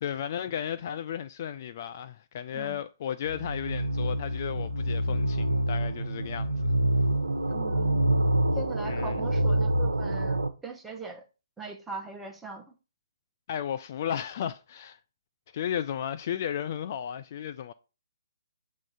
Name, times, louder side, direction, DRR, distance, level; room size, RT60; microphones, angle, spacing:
voice 1, 0.0-6.7 8.8-9.2 13.5-15.0 15.5-17.7, left 9 dB, 35° left, 0.3 m, -34 dB
sound 1, 3.3-10.5, right 1 dB, 75° right, 0.8 m, -27 dB
voice 2, 7.5-8.0 8.5-11.2 11.6-12.7, right 4 dB, 5° right, 0.8 m, -41 dB
7.4 x 3.8 x 4.9 m
figure-of-eight pair, 135°, 2 cm